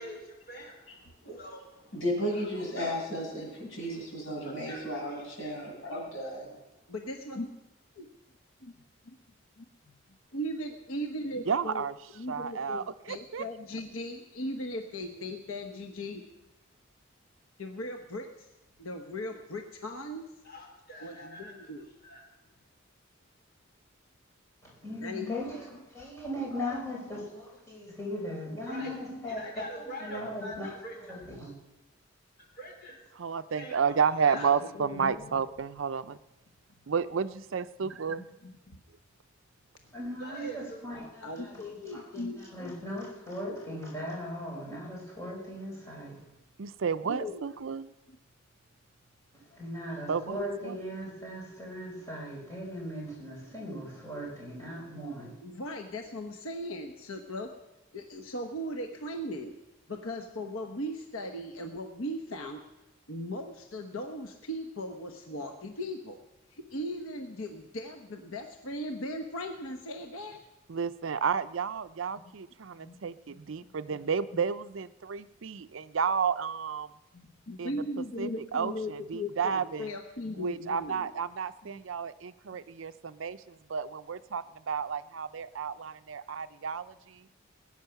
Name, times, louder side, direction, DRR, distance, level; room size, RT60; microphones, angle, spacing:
voice 1, 0.0-2.0 2.3-3.0 4.3-5.8 20.4-21.5 22.0-22.2 28.7-29.0 29.3-30.5 30.8-31.2 32.6-33.0 33.5-34.5 40.2-40.8, equal, 50° left, 0 dB, 4.4 m, -44 dB
voice 2, 1.9-6.6, equal, 75° left, -2 dB, 6.9 m, -34 dB
voice 3, 6.9-7.5 8.0-8.1 8.6-8.7 9.1-9.2 9.6-10.0 10.3-11.8 12.2-16.2 17.6-18.5 18.8-20.2 21.0-21.9 25.0-25.5 27.0-27.1 29.1-29.3 30.5-30.6 34.3-35.4 37.8-37.9 38.4-38.8 41.2-42.7 43.4-43.6 47.1-47.4 55.4-57.5 57.9-59.5 59.9-62.6 63.1-66.2 66.5-70.4 72.8-73.0 73.3-73.4 73.6-74.0 74.3-74.4 77.1-81.1 81.6-81.8, left 1 dB, 90° left, 4 dB, 1.1 m, -38 dB
voice 4, 11.5-11.9 12.3-13.5 33.2-36.2 36.9-38.3 46.6-47.9 50.1-50.4 50.6-50.8 70.7-76.9 77.6-79.9 80.4-87.3, right 6 dB, 70° right, 13 dB, 0.5 m, -32 dB
voice 5, 24.6-25.7 25.9-29.4 29.7-31.5 39.9-42.0 42.3-46.2 49.3-55.4, equal, 15° left, -4 dB, 4.6 m, -38 dB
20.5 x 9.1 x 5.9 m, 0.99 s
head